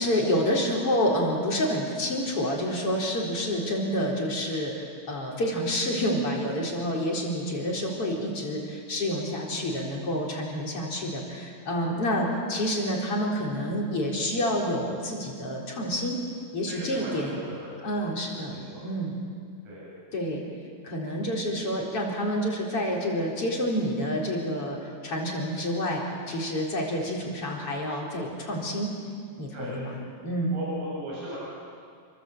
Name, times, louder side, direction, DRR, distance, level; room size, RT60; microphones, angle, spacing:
voice 1, 0.0-16.2 16.5-17.4 17.8-18.5 18.8-19.2 20.1-20.4 20.8-26.0 26.3-28.9 29.4-29.9 30.2-30.6, equal, 35° left, -2 dB, 4.6 m, -28 dB
voice 2, 16.7-17.9 18.2-18.9 19.6-19.9 29.5-29.8 30.5-31.4, equal, 45° right, -6 dB, 9.2 m, -38 dB
29.0 x 24.0 x 8.0 m, 2.2 s
omnidirectional pair, 4.8 m